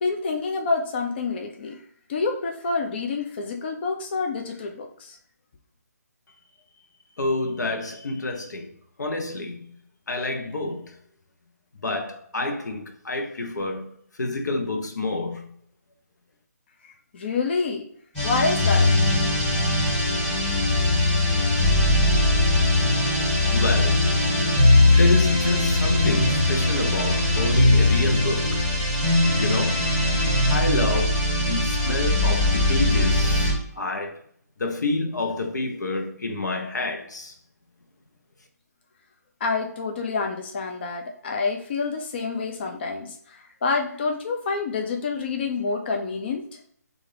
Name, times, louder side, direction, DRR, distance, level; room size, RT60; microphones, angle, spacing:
voice 1, 0.0-1.8 2.1-5.2 17.1-17.8 18.2-18.9 39.4-46.4, left 4 dB, 35° left, 0.4 m, -27 dB
voice 2, 7.2-8.7 9.0-9.7 10.1-11.0 11.8-15.5 23.5-24.2 24.9-28.6 29.3-29.8 30.5-34.2 34.6-37.3, left 2 dB, 85° left, 0.8 m, -28 dB
sound 1, 18.1-33.6, left 2 dB, 10° left, 1.4 m, -20 dB
3.8 x 2.5 x 3.3 m
hypercardioid pair, 160°, 9 cm